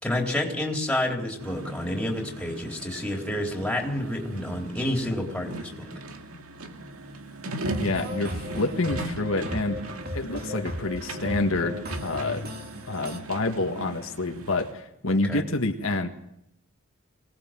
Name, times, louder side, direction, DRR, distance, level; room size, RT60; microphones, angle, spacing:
voice 1, 0.0-5.9 15.1-15.4, left 1 dB, 5° left, 1 dB, 3.7 m, -29 dB
sound 1, 1.4-14.7, right 2 dB, 85° right, 2.0 m, -39 dB
sound 2, 7.6-13.2, left 1 dB, 45° right, 2.6 m, -36 dB
voice 2, 7.7-9.8 10.1-12.5 12.9-16.1, left 2 dB, 70° left, 4 dB, 1.6 m, -28 dB
23.5 x 18.5 x 7.6 m, 0.79 s
head